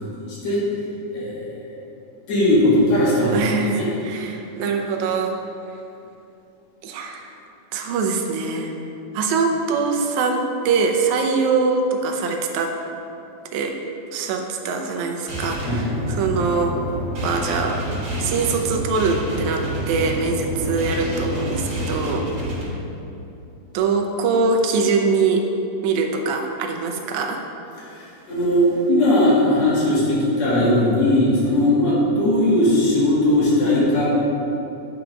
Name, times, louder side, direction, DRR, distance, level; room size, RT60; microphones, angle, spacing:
voice 1, 1.1-1.7 2.3-3.3 3.7-3.9 15.7-15.9 27.9-34.2, left 1 dB, 55° left, -7 dB, 2.8 m, -18 dB
voice 2, 3.2-5.4 6.8-7.3 7.7-8.7 9.1-12.7 13.5-13.8 14.1-16.8 17.2-17.8 18.2-22.2 23.7-25.4 25.8-27.4, right 4 dB, 75° right, 3 dB, 1.9 m, -23 dB
sound 1, 15.3-22.6, equal, 40° right, 2.2 m, -28 dB
8.6 x 4.8 x 5.0 m, 2.8 s
omnidirectional pair, 3.7 m